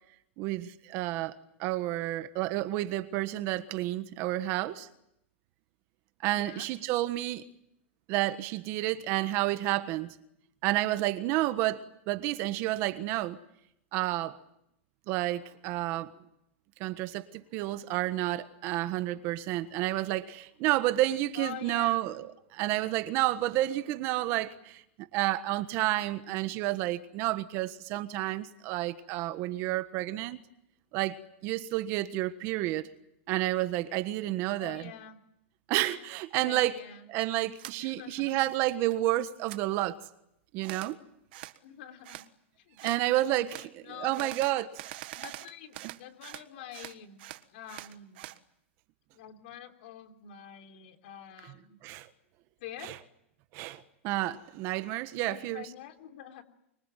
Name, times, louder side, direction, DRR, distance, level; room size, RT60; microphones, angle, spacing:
voice 1, 0.4-4.9 6.2-7.4 8.1-10.1 10.6-13.4 13.9-14.4 15.1-16.1 16.8-22.2 22.5-30.4 30.9-31.2 31.4-32.9 33.3-34.9 35.7-36.8 37.1-40.0 40.5-41.0 42.8-44.7 45.8-45.9 51.8-52.1 52.8-52.9 53.5-55.7, right 16 dB, 35° right, 1.4 m, -30 dB
voice 2, 6.3-6.7 21.3-22.0 34.6-35.2 36.4-37.1 37.8-38.4 41.6-42.2 42.6-43.3 43.5-44.4 45.2-47.2 47.5-48.3 49.1-51.8 52.6-52.9 54.2-54.4 55.2-56.4, left 10 dB, 55° left, 3.5 m, -46 dB
sound 1, 37.6-37.8 38.2-38.9 39.2-39.6 40.6-40.9 41.3-41.6 42.0-42.3 42.8-43.0 43.5-43.7 44.1-46.5 46.7-48.4, right 17 dB, 55° right, 1.4 m, -44 dB
26.5 x 24.5 x 9.2 m
supercardioid pair, 155°, 7 cm